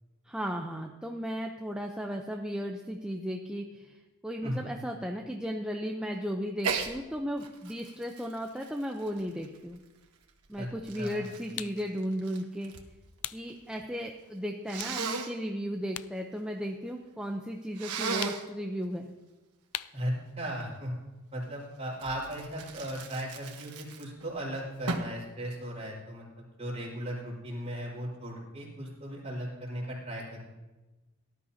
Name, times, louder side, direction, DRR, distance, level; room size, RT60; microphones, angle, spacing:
voice 1, 0.2-9.8 10.5-12.7 13.3-19.1, equal, 5° right, 1 dB, 0.6 m, -35 dB
Sneeze, 6.6-6.9 7.4-9.7 10.4-12.9 13.2-13.8 14.7-15.3 17.7-18.5 22.0-24.3 24.9-25.2, right 5 dB, 90° right, 1.3 m, -36 dB
sound 1, 11.6-11.8 13.2-13.5 14.0-14.1 14.7-16.2 16.5-17.6 18.2-18.6 19.7-20.1, left 14 dB, 70° left, 0.4 m, -40 dB
voice 2, 19.9-21.0 21.3-30.4, equal, 30° right, -4 dB, 4.6 m, -37 dB
18.0 x 12.5 x 2.8 m, 1.2 s
head